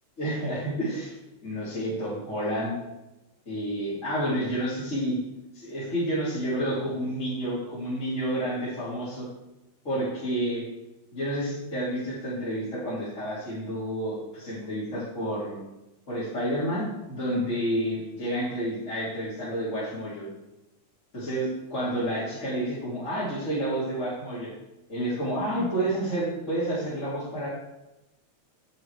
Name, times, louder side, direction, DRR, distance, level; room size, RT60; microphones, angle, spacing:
voice 1, 0.2-1.1 1.4-2.7 3.4-5.2 5.5-9.3 9.8-10.6 11.1-15.6 16.1-20.3 21.1-24.5 24.9-27.5, right 1 dB, 25° left, -11 dB, 3.5 m, -30 dB
11.0 x 9.0 x 4.8 m, 0.98 s
omnidirectional pair, 3.4 m